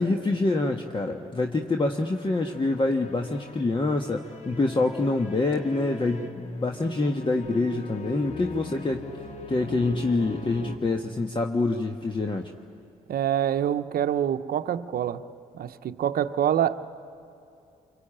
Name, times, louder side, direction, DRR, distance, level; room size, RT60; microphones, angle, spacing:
voice 1, 0.0-9.1 9.5-12.5, left 2 dB, 30° left, 3 dB, 1.4 m, -26 dB
sound 1, 1.7-10.8, left 3 dB, 45° left, 2.2 m, -41 dB
voice 2, 13.1-15.2 15.5-16.8, right 10 dB, 65° right, 10 dB, 0.8 m, -26 dB
26.5 x 24.5 x 8.9 m, 2.6 s
supercardioid pair, 55°, 17 cm